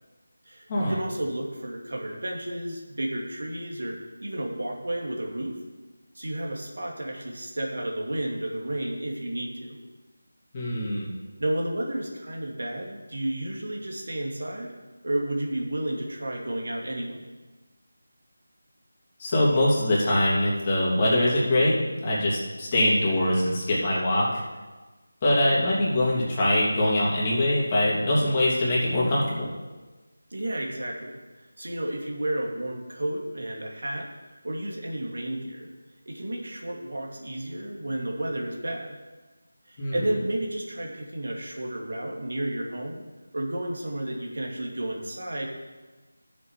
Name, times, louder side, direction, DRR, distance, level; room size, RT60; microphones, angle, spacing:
voice 1, 0.5-5.6 6.1-9.8 11.4-14.7 15.0-17.3 30.3-31.2 31.6-34.1 34.4-35.7 36.1-38.9 39.7-43.0 43.3-45.5, right 1 dB, 70° right, -1 dB, 2.6 m, -32 dB
voice 2, 10.5-11.1 19.2-21.8 22.0-24.4 25.2-29.5 39.8-40.0, left 1 dB, 25° left, -6 dB, 2.8 m, -23 dB
12.5 x 7.1 x 4.8 m, 1.2 s
figure-of-eight pair, 170°, 0 cm